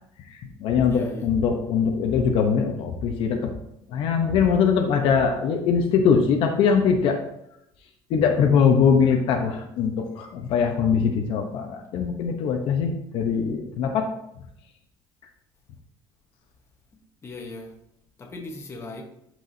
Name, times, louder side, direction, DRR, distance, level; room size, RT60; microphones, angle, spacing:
voice 1, 0.3-3.5 3.9-7.2 8.1-14.1, left 6 dB, 60° left, 0.9 m, -22 dB
voice 2, 0.8-1.3 10.2-10.3 17.2-17.8 18.2-19.0, left 2 dB, 25° left, 1.2 m, -38 dB
12.0 x 4.7 x 2.8 m
cardioid pair, 150°, 10 cm